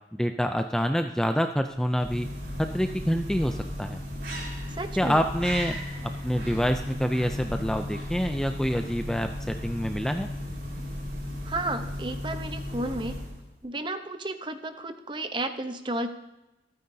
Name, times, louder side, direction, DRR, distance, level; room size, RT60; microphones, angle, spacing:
voice 1, 0.1-2.3 2.6-4.0 5.0-10.3, equal, 5° left, 6 dB, 0.4 m, -27 dB
sound 1, 1.7-13.6, left 1 dB, 65° right, 4.3 m, -35 dB
voice 2, 4.7-5.2 11.4-13.2 13.6-16.1, right 2 dB, 25° right, 8 dB, 0.8 m, -32 dB
26.0 x 9.4 x 2.7 m, 0.98 s
head